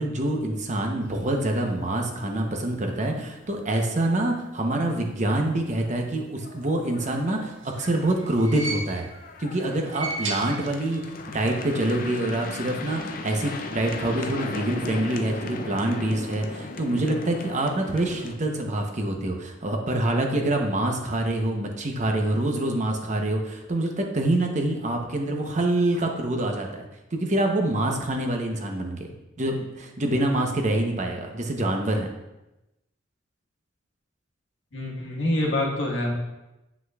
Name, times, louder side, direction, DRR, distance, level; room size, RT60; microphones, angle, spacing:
voice 1, 0.0-9.1 9.4-26.8 27.1-29.1 29.4-32.1, right 1 dB, 40° right, 2 dB, 0.8 m, -26 dB
sound 1, 1.2-1.9 2.1-2.2 2.5-2.7 3.1-3.2 5.0-5.1 5.7-5.8 6.1-18.4, left 3 dB, 45° left, 0.5 m, -37 dB
sound 2, 7.3-9.3 9.7-11.2 11.4-11.5 12.6-12.7, right 3 dB, 75° right, 0.8 m, -35 dB
voice 2, 34.7-36.1, left 1 dB, 75° left, -2 dB, 1.5 m, -26 dB
7.8 x 5.9 x 2.4 m, 0.96 s
head